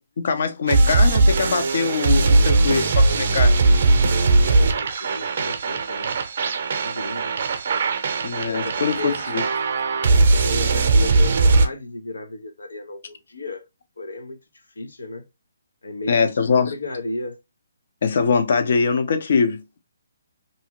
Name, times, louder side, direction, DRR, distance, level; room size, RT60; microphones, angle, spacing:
voice 1, 0.2-3.5 8.2-8.9 9.3-9.4 16.1-16.7 18.0-19.6, left 5 dB, 55° left, 0.7 m, -22 dB
sound 1, 0.7-11.7, right 3 dB, 50° right, 0.6 m, -19 dB
voice 2, 4.2-6.2 6.7-7.3 8.4-9.2 10.4-13.6 14.0-14.4 14.8-15.2 15.8-17.4, left 2 dB, 90° left, 0.8 m, -34 dB
2.7 x 2.4 x 2.8 m
hypercardioid pair, 155°, 0 cm